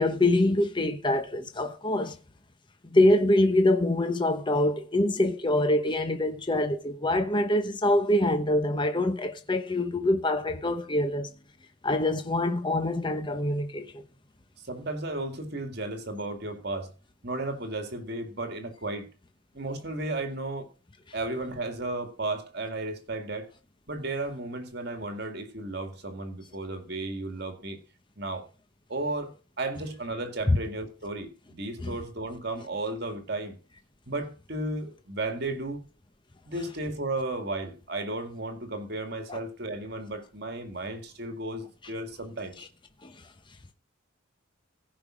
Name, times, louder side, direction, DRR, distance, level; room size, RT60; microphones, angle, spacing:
voice 1, 0.0-2.2 2.9-11.3 11.8-13.9 30.5-30.6 31.8-31.9 39.3-39.4 43.0-43.1, left 1 dB, 25° left, 0.9 m, -25 dB
voice 2, 14.6-16.9 17.2-19.1 19.5-20.7 21.1-23.5 23.9-27.8 28.2-28.4 28.9-33.5 34.1-35.8 36.5-42.6, right 2 dB, 50° right, 2.1 m, -34 dB
15.5 x 5.4 x 6.3 m
head